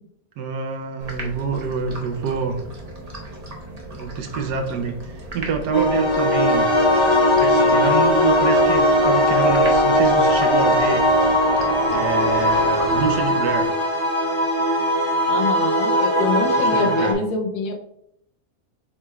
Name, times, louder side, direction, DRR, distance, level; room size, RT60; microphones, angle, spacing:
voice 1, 0.4-2.6 3.9-6.8 7.4-11.1 11.8-13.7 16.6-17.2, right 5 dB, 85° right, 5 dB, 1.2 m, -27 dB
sound 1, 1.0-13.7, right 1 dB, 35° right, 0.7 m, -37 dB
sound 2, 5.7-17.1, left 1 dB, 35° left, 0.4 m, -18 dB
voice 2, 15.3-17.7, left 3 dB, 70° left, 4 dB, 0.9 m, -25 dB
7.2 x 3.2 x 2.2 m, 0.74 s
omnidirectional pair, 1.7 m